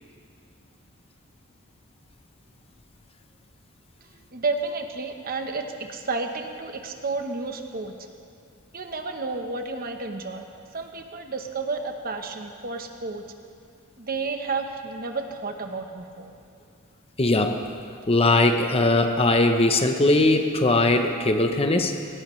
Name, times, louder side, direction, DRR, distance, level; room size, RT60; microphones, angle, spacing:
voice 1, 4.3-7.9 8.7-10.5 10.7-13.2 14.0-16.3, right 3 dB, 45° right, 5 dB, 1.0 m, -31 dB
voice 2, 17.2-17.6 18.1-21.9, left 2 dB, 30° left, 6 dB, 0.8 m, -20 dB
18.5 x 17.5 x 3.2 m, 2.4 s
head